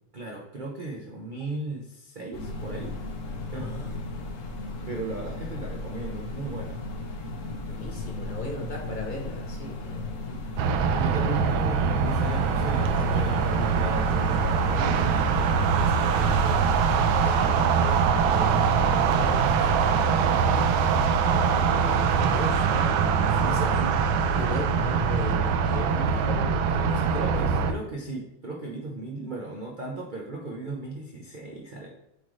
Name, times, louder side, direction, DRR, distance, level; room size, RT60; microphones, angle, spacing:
voice 1, 0.1-2.9 3.5-3.7 4.8-6.8 9.9-10.1 11.0-20.7 23.4-23.8 27.0-31.9, right 2 dB, 75° right, -1 dB, 0.4 m, -37 dB
sound 1, 2.3-19.6, left 2 dB, 55° left, 0.9 m, -36 dB
voice 2, 3.5-4.3 7.7-10.4 10.9-11.4 21.4-23.1 23.4-27.4, left 2 dB, 90° left, -1 dB, 0.4 m, -37 dB
sound 2, 10.6-27.7, right 6 dB, 90° right, 1.4 m, -23 dB
sound 3, 12.0-17.4, left 1 dB, 75° left, 2.1 m, -45 dB
8.5 x 3.8 x 3.2 m, 0.83 s
omnidirectional pair, 2.1 m